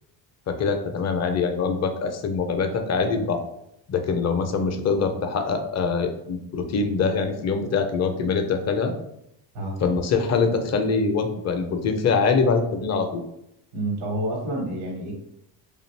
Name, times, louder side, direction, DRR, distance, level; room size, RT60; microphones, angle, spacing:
voice 1, 0.5-3.4 3.9-8.9 9.8-13.2, left 5 dB, 35° left, 6 dB, 0.5 m, -24 dB
voice 2, 13.7-15.1, right 1 dB, 75° right, 0 dB, 1.2 m, -28 dB
2.5 x 2.5 x 3.1 m, 0.80 s
supercardioid pair, 65°, 50 cm